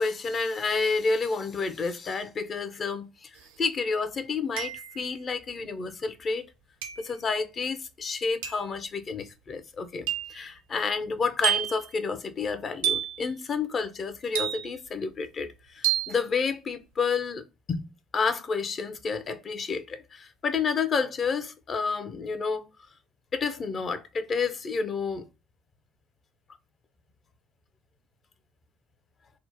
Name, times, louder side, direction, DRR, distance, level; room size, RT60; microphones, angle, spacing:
voice 1, 0.0-3.3 3.6-6.5 7.0-22.7 23.3-25.3, left 4 dB, 40° left, 0.5 m, -30 dB
sound 1, 3.4-3.5 4.6-5.1 6.8-7.2 8.4-8.7 10.1-10.4 11.4-11.9 12.8-13.2 14.4-14.9 15.8-16.2, right 10 dB, 75° right, 0.4 m, -29 dB
3.5 x 2.0 x 2.8 m
hypercardioid pair, 55°, 0 cm